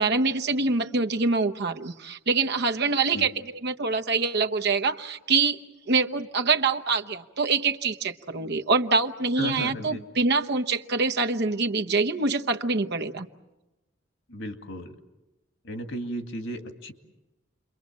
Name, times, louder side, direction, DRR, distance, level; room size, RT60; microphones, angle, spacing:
voice 1, 0.0-3.3 3.6-5.6 5.9-13.3, right 4 dB, 55° right, 5 dB, 1.1 m, -25 dB
voice 2, 9.4-10.0 14.3-14.9 15.6-16.9, equal, 65° left, 6 dB, 2.2 m, -34 dB
29.5 x 23.0 x 7.5 m, 1.0 s
head